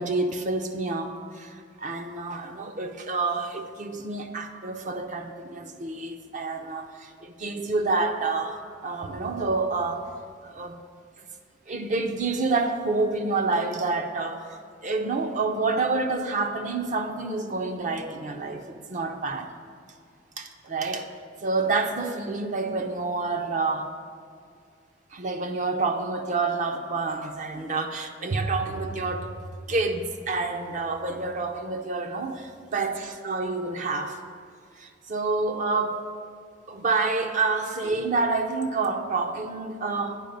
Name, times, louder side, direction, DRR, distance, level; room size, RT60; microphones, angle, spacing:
voice 1, 0.0-10.1 10.4-10.8 11.7-14.4 14.8-19.5 20.4-21.1 21.4-23.9 25.1-29.3 29.7-34.2 34.8-36.0 36.7-40.2, right 3 dB, 45° right, 5 dB, 0.5 m, -28 dB
9.0 x 4.9 x 5.3 m, 2.2 s
head